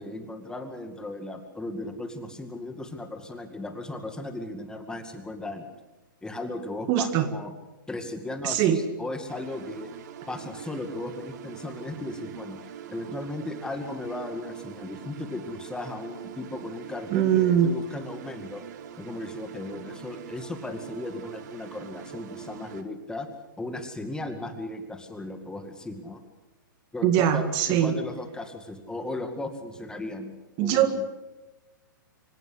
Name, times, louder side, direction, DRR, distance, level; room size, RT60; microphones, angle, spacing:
voice 1, 0.0-5.7 6.2-7.5 7.9-9.9 10.3-12.6 12.9-18.6 19.0-23.3 23.6-26.2 26.9-30.3 30.6-31.0, left 2 dB, 5° left, 6 dB, 2.2 m, -36 dB
voice 2, 6.9-7.3 8.4-8.8 17.1-17.7 27.0-28.0 30.6-30.9, right 10 dB, 35° right, 9 dB, 2.0 m, -22 dB
sound 1, 9.3-22.8, right 8 dB, 55° right, 2.0 m, -43 dB
25.5 x 17.0 x 8.2 m, 1.1 s
hypercardioid pair, 130°, 11 cm